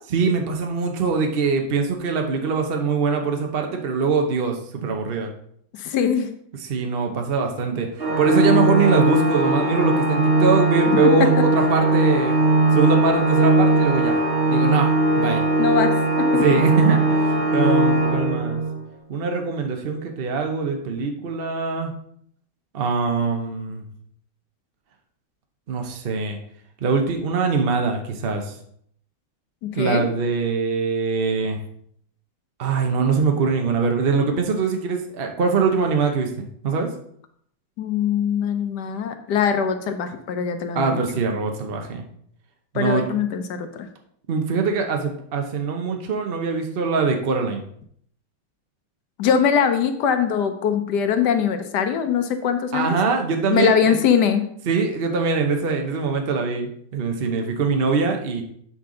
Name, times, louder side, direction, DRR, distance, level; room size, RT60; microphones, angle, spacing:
voice 1, 0.1-5.3 6.6-12.4 12.7-14.2 14.5-15.4 16.3-17.3 17.5-18.6 19.1-21.9 22.7-23.8 25.7-26.4 26.8-28.5 29.7-31.6 32.6-36.9 40.7-42.0 42.7-43.1 44.3-47.6 52.7-53.9 54.7-58.4, right 4 dB, 80° right, 3 dB, 0.5 m, -23 dB
voice 2, 5.7-6.3 15.6-16.4 29.6-30.1 37.8-41.0 42.7-43.9 49.2-53.0 53.5-54.5, left 7 dB, 65° left, 8 dB, 1.1 m, -22 dB
Organ, 8.0-18.8, right 2 dB, 35° right, 1.2 m, -19 dB
7.7 x 5.6 x 3.8 m, 0.67 s
omnidirectional pair, 2.2 m